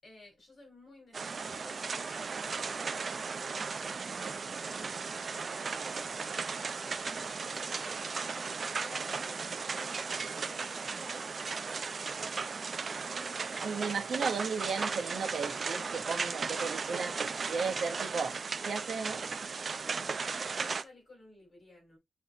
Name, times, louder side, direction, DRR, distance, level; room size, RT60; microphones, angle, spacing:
voice 1, 0.0-5.2 5.6-6.2 6.7-7.0 7.8-12.3 13.1-13.4 20.1-22.0, left 2 dB, 40° left, 5.0 m, -56 dB
sound 1, 1.1-20.8, right 5 dB, 50° right, 0.5 m, -36 dB
voice 2, 13.6-18.4 18.6-19.8, right 5 dB, 80° right, 1.3 m, -35 dB
8.5 x 4.1 x 2.9 m
wide cardioid pair, 140°, 0 cm